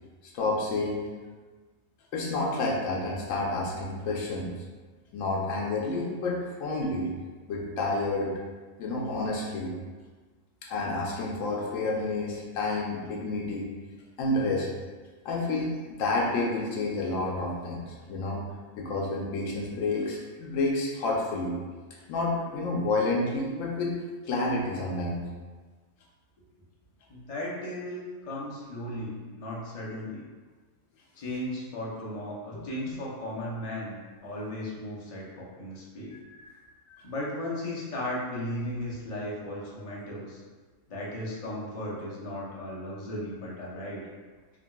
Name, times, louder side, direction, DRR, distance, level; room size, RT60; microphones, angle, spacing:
voice 1, 0.2-1.1 2.1-4.5 5.1-7.1 7.5-8.3 8.8-9.7 10.6-13.7 14.2-14.7 15.2-18.5 18.8-21.6 22.1-24.0 24.3-25.2 32.5-32.9 36.3-36.5 36.9-37.0, left 2 dB, 80° left, -2 dB, 1.0 m, -29 dB
voice 2, 27.1-30.2 31.2-34.0 34.2-36.1 37.0-40.4 40.9-44.0, left 1 dB, 45° left, -5 dB, 0.4 m, -36 dB
3.6 x 2.2 x 2.2 m, 1.4 s
omnidirectional pair, 1.3 m